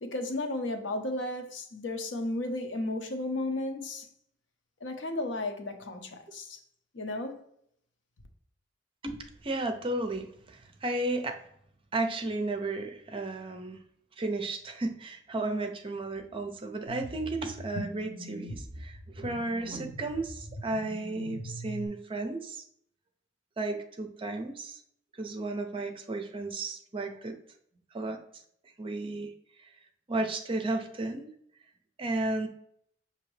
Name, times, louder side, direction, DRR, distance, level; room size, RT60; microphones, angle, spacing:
voice 1, 0.0-4.1 4.8-6.6 6.9-7.4, left 2 dB, 75° left, 0.7 m, -34 dB
voice 2, 9.4-11.4 11.9-13.8 14.2-22.6 23.6-24.8 25.2-27.4 27.9-28.2 28.8-29.3 30.1-31.3 32.0-32.5, right 2 dB, 30° right, 0.5 m, -33 dB
sound 1, 16.9-21.9, equal, 45° left, 1.0 m, -42 dB
6.0 x 2.8 x 3.1 m
head